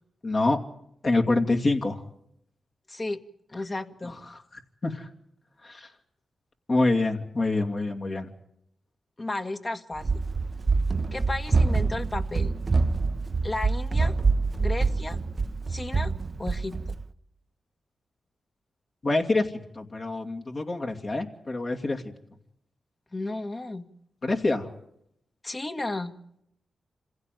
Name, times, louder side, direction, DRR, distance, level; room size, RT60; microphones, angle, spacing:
voice 1, 0.2-0.6 1.0-2.0 4.3-4.4 4.8-5.1 5.6-5.9 6.7-8.3 19.0-22.0 24.2-24.7, left 2 dB, 50° left, 2 dB, 2.5 m, -26 dB
voice 2, 2.9-3.2 3.5-4.2 9.2-10.1 11.1-12.5 13.4-14.1 14.6-15.2 15.7-16.1 16.4-16.8 23.1-23.9 25.4-26.1, left 2 dB, 35° left, 7 dB, 1.7 m, -33 dB
Run, 10.0-17.0, right 4 dB, 45° right, 0.8 m, -25 dB
26.5 x 16.0 x 9.2 m, 0.76 s
cardioid pair, 50°, 0 cm